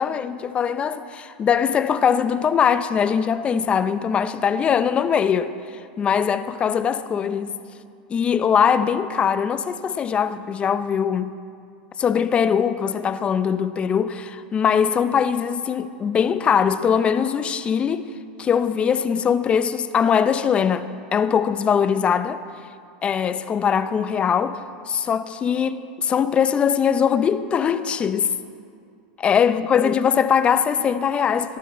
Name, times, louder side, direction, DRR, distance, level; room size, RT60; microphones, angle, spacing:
voice 1, 0.0-7.6 8.1-11.3 12.0-18.1 18.4-22.4 23.0-24.6 24.9-28.3 29.2-31.6, left 7 dB, 25° left, 0.5 m, -21 dB
14.0 x 14.0 x 4.2 m
supercardioid pair, 125°, 4 cm